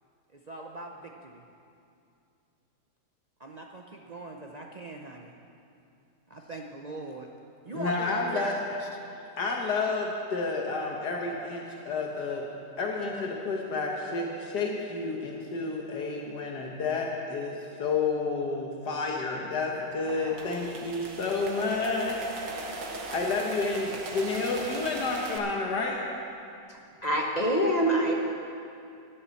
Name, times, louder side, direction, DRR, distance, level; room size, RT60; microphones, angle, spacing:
voice 1, 0.3-1.4 3.4-5.3 6.3-7.3 7.6-9.0, right 2 dB, 75° right, 1 dB, 0.3 m, -41 dB
voice 2, 7.7-8.5 9.4-12.4 12.8-22.9 23.1-26.0, left 3 dB, 75° left, 0 dB, 1.7 m, -30 dB
sound 1, 19.8-25.4, right 2 dB, 90° right, 1.7 m, -39 dB
voice 3, 27.0-28.1, right 1 dB, 30° left, -1 dB, 1.0 m, -24 dB
11.0 x 10.5 x 7.0 m, 2.6 s
omnidirectional pair, 1.8 m